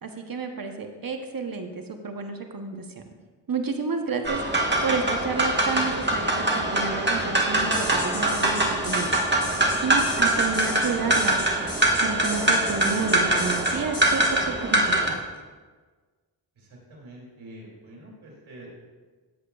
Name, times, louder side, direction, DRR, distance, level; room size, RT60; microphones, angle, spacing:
voice 1, 0.0-2.8 3.5-9.5 9.8-11.4 12.0-15.2, right 4 dB, 45° right, 5 dB, 1.0 m, -31 dB
sound 1, 4.3-15.1, right 1 dB, 25° right, 1.4 m, -23 dB
sound 2, 7.7-14.3, left 2 dB, 50° left, 2.9 m, -36 dB
voice 2, 16.9-18.7, right 1 dB, 85° right, -3 dB, 2.8 m, -46 dB
14.0 x 7.9 x 2.3 m, 1.4 s
cardioid pair, 65°, 46 cm